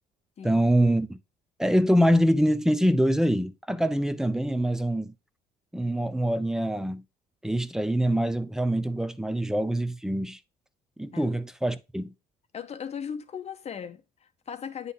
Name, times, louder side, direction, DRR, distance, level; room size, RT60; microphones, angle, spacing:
voice 1, 0.4-1.2 1.6-5.1 5.7-7.0 7.4-10.4 11.0-12.1, equal, 5° right, 0.7 m, -24 dB
voice 2, 12.5-14.9, left 7 dB, 40° left, 0.9 m, -38 dB
10.0 x 3.6 x 3.9 m
cardioid pair, 110°, 17 cm